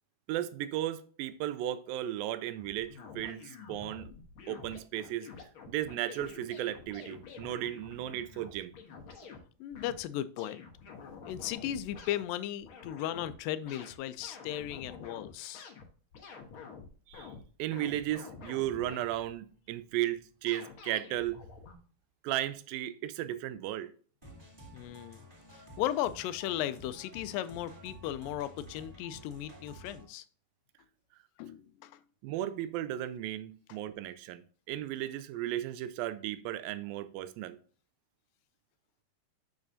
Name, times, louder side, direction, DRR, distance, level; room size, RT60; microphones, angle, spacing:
voice 1, 0.3-4.1 4.5-5.3 5.7-8.7 17.1-17.3 17.6-21.4 22.2-23.9 32.2-37.6, right 13 dB, 85° right, 2.4 m, -35 dB
sound 1, 2.6-9.4 9.7-10.0 10.4-12.3 12.6-13.4 13.7-17.5 17.7-19.3 20.5-21.8, left 5 dB, 65° left, 1.2 m, -48 dB
voice 2, 9.6-10.6 11.3-15.7 24.7-25.2 25.8-30.3 31.4-32.0, left 12 dB, 80° left, 2.2 m, -36 dB
sound 2, 24.2-30.0, right 1 dB, 10° right, 1.9 m, -51 dB
7.1 x 6.4 x 2.6 m
omnidirectional pair, 4.1 m